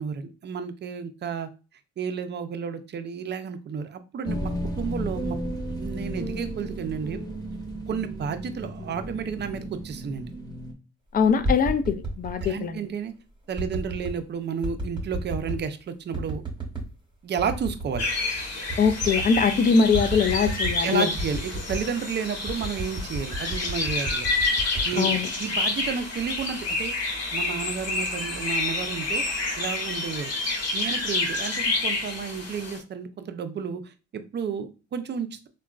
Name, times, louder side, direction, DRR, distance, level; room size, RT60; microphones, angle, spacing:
voice 1, 0.0-1.5 2.0-4.5 4.8-5.4 5.8-7.2 7.9-10.3 12.4-13.1 13.5-16.4 17.2-18.1 20.8-24.3 24.8-25.1 25.4-30.3 30.7-35.5, right 6 dB, 35° right, 0.4 m, -32 dB
sound 1, 4.2-10.7, right 1 dB, 10° left, 0.9 m, -34 dB
voice 2, 11.1-12.8 18.8-21.1 25.0-25.3, left 5 dB, 30° left, 0.3 m, -22 dB
sound 2, 11.2-12.5 13.5-14.2 14.6-15.7 16.1-16.9 17.4-18.1 18.4-18.5 18.7-19.5 19.9-20.8 21.2-21.9 22.4-25.6 26.0-26.4, right 1 dB, 15° right, 1.0 m, -32 dB
sound 3, 18.0-32.8, left 3 dB, 55° left, 1.1 m, -29 dB
3.5 x 2.2 x 2.3 m
cardioid pair, 90°, 30 cm